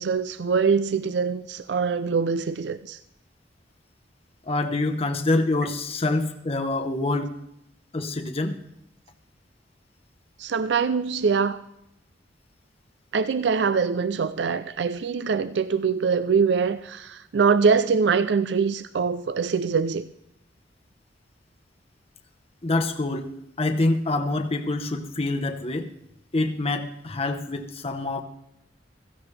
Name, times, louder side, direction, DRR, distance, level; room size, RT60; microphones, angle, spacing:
voice 1, 0.0-3.0 10.4-11.6 13.1-20.1, right 5 dB, 65° right, 0.4 m, -23 dB
voice 2, 4.5-7.3 7.9-8.6 22.6-23.3 23.6-25.9 26.3-28.2, left 2 dB, 35° left, 1.0 m, -26 dB
16.5 x 15.0 x 3.3 m
head